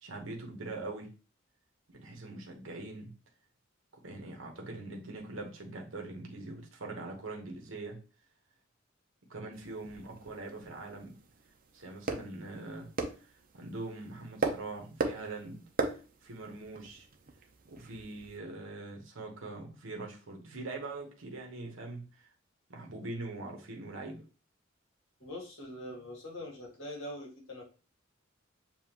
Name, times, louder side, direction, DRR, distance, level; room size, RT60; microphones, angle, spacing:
voice 1, 0.0-1.1 1.9-3.1 4.0-8.0 9.3-11.2 11.7-12.9 13.2-15.6 16.2-17.1 17.7-22.3 22.7-24.2, right 2 dB, 80° right, 1 dB, 1.1 m, -42 dB
sound 1, 9.5-18.4, right 3 dB, 45° right, 0.6 m, -39 dB
voice 2, 25.2-27.6, left 1 dB, 65° left, -1 dB, 1.8 m, -43 dB
7.1 x 2.5 x 2.9 m, 0.35 s
head